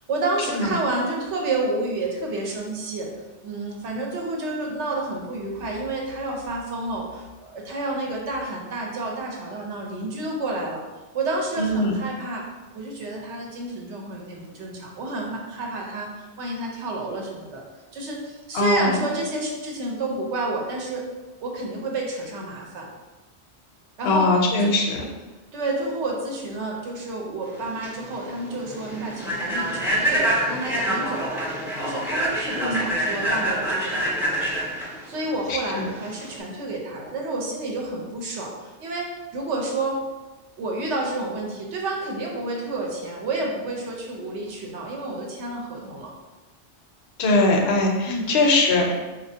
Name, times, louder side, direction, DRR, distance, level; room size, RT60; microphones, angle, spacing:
voice 1, 0.1-3.1 3.4-10.8 11.1-12.4 12.7-17.6 17.9-21.0 21.4-22.9 24.0-24.3 24.6-24.7 25.5-34.4 35.1-40.0 40.6-46.1 48.1-48.3, right 2 dB, 75° right, -1 dB, 1.0 m, -30 dB
voice 2, 11.6-11.9 18.5-19.0 24.0-25.0 32.5-32.8 35.5-35.6 47.2-48.9, left 2 dB, 65° left, 1 dB, 0.8 m, -21 dB
Human voice / Train, 27.5-36.4, right 1 dB, 5° right, 0.4 m, -26 dB
4.1 x 2.4 x 2.7 m, 1.2 s
omnidirectional pair, 1.2 m